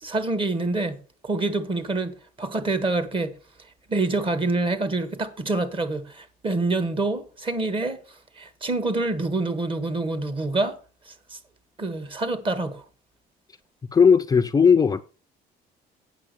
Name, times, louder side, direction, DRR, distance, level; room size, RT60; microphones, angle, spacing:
voice 1, 0.0-1.0 1.2-3.3 3.9-8.0 8.4-10.8 11.1-11.4 11.8-12.9, right 2 dB, 30° right, 1.6 m, -26 dB
voice 2, 13.9-15.0, left 6 dB, 20° left, 0.4 m, -17 dB
8.5 x 6.2 x 6.8 m
cardioid pair, 110°, 17 cm